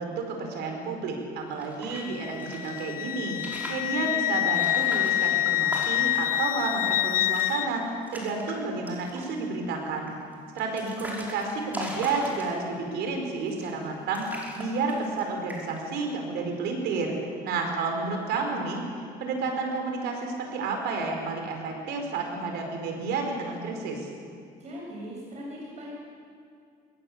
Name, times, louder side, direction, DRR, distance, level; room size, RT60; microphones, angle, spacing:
voice 1, 0.0-3.4 3.7-7.8 8.1-10.1 10.5-14.3 14.5-17.2 17.4-18.8 19.2-24.1, right 4 dB, 80° right, 3 dB, 5.1 m, -31 dB
sound 1, 1.5-2.8 3.3-3.9 4.5-6.3 6.7-6.8 7.0-7.5 7.9-8.5 8.9-9.4 10.1-12.8 13.5-13.9 14.1-15.2 15.5-15.9, equal, 10° right, 5.5 m, -39 dB
Wind instrument woodwind instrument, 1.9-7.7, left 13 dB, 55° left, 0.7 m, -27 dB
voice 2, 24.6-25.9, equal, 40° right, -4 dB, 7.3 m, -39 dB
22.0 x 18.5 x 8.1 m, 2.3 s
cardioid pair, 110°, 17 cm